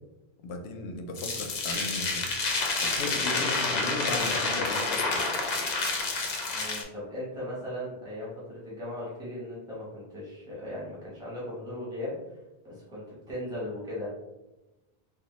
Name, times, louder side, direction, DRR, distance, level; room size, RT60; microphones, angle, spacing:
voice 1, 0.4-2.3 2.8-5.2, left 2 dB, 85° left, 5 dB, 0.8 m, -36 dB
sound 1, 1.2-6.8, left 3 dB, 50° left, 0.6 m, -29 dB
voice 2, 6.5-12.4 12.6-14.1, left 1 dB, 5° right, -8 dB, 0.9 m, -38 dB
3.7 x 2.2 x 3.0 m, 1.0 s
omnidirectional pair, 1.1 m